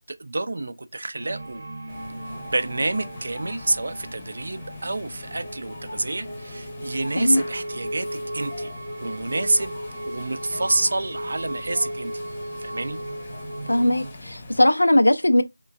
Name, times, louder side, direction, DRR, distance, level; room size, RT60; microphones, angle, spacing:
voice 1, 0.0-1.7 2.5-8.7 9.0-9.8 10.1-12.1 12.6-13.0, right 2 dB, 45° right, 0.4 m, -28 dB
sound 1, 1.1-14.1, right 1 dB, 25° right, 0.8 m, -36 dB
sound 2, 1.9-14.6, left 2 dB, 20° left, 0.8 m, -42 dB
voice 2, 13.7-15.4, left 1 dB, 75° left, 0.5 m, -19 dB
3.2 x 2.2 x 2.3 m
figure-of-eight pair, 170°, 0 cm